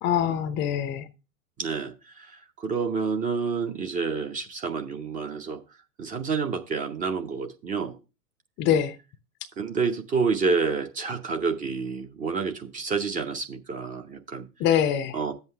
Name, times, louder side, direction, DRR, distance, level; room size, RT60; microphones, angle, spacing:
voice 1, 0.0-1.1 8.6-8.9 14.6-15.2, left 9 dB, 25° left, 0.6 m, -24 dB
voice 2, 1.6-5.6 6.0-8.0 9.6-14.5 15.1-15.3, right 5 dB, 15° right, 0.7 m, -29 dB
10.5 x 8.0 x 3.4 m
figure-of-eight pair, 105°, 46 cm